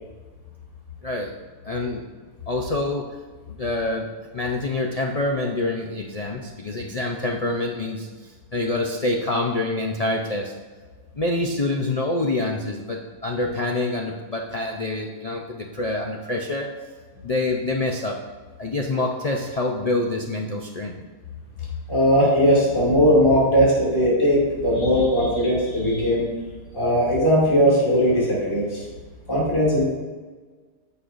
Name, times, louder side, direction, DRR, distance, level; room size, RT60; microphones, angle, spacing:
voice 1, 1.7-2.0 2.5-3.1 3.5-4.1 4.3-8.1 8.5-10.5 11.1-16.7 17.2-18.2 18.6-20.9, left 2 dB, 80° left, 0 dB, 0.3 m, -26 dB
voice 2, 21.9-26.3 26.7-28.8 29.3-29.8, equal, 20° left, -6 dB, 2.4 m, -19 dB
14.5 x 5.5 x 2.6 m, 1.4 s
omnidirectional pair, 1.7 m